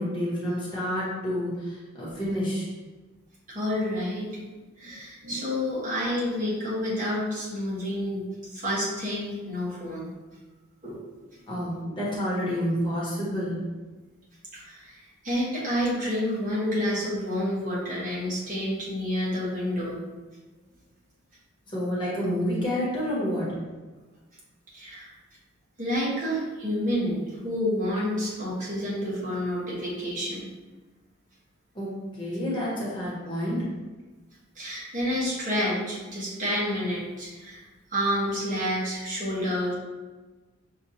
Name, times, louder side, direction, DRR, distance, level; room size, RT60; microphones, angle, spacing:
voice 1, 0.0-2.7 11.5-13.6 21.7-23.4 31.7-31.9 32.2-33.6, equal, 25° left, -7 dB, 1.1 m, -29 dB
voice 2, 3.5-4.3 4.8-8.2 8.5-10.1 10.8-11.0 11.6-11.7 14.5-20.0 24.7-25.1 25.8-30.4 34.5-37.6 37.9-39.7, equal, 40° right, -7 dB, 1.2 m, -29 dB
6.0 x 2.4 x 2.8 m, 1.3 s
head